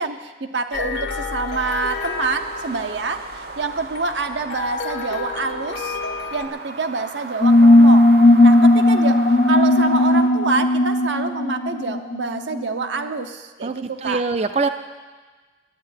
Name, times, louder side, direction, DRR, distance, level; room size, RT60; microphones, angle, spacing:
voice 1, 0.0-6.0 6.3-8.1 8.4-9.2 9.5-14.2, right 4 dB, 85° right, 7 dB, 0.9 m, -26 dB
sound 1, 0.7-6.5, left 5 dB, 80° left, 1.3 m, -31 dB
sound 2, 1.5-10.3, right 3 dB, 55° right, 0.8 m, -36 dB
sound 3, 7.4-12.6, left 1 dB, 40° left, 0.4 m, -15 dB
voice 2, 13.6-14.7, right 4 dB, 35° right, 9 dB, 0.4 m, -23 dB
11.0 x 8.8 x 9.8 m, 1.4 s
head